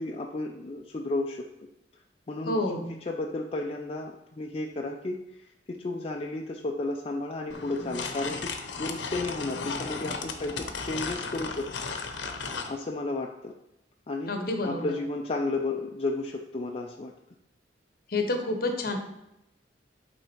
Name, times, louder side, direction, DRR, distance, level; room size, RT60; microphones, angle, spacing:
voice 1, 0.0-1.5 2.3-2.6 3.0-11.7 12.3-13.5 14.1-17.1, left 2 dB, 35° left, 1 dB, 0.4 m, -33 dB
voice 2, 2.5-2.9 14.3-15.0 18.1-19.0, left 2 dB, 55° left, 4 dB, 1.0 m, -29 dB
Wall-Mounted Pencil Sharpener, 7.5-12.7, left 4 dB, 85° left, 0.7 m, -35 dB
8.2 x 3.6 x 4.4 m, 0.86 s
head